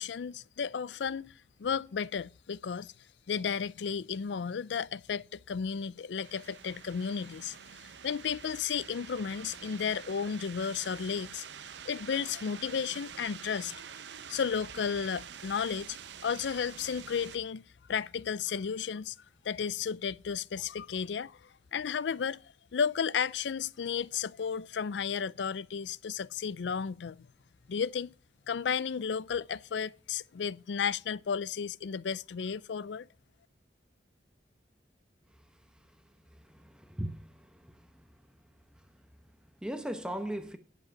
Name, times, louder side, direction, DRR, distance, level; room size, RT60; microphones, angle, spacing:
voice 1, 0.0-1.3 1.6-2.9 3.3-11.5 11.8-13.8 14.3-16.0 16.2-19.2 19.4-22.4 22.7-27.3 27.7-28.1 28.5-33.1, left 6 dB, 80° left, 0.4 m, -33 dB
sound 1, 6.2-17.4, right 8 dB, 80° right, 0.7 m, -47 dB
voice 2, 35.3-40.6, right 1 dB, 5° right, 0.9 m, -41 dB
10.5 x 7.4 x 5.7 m
head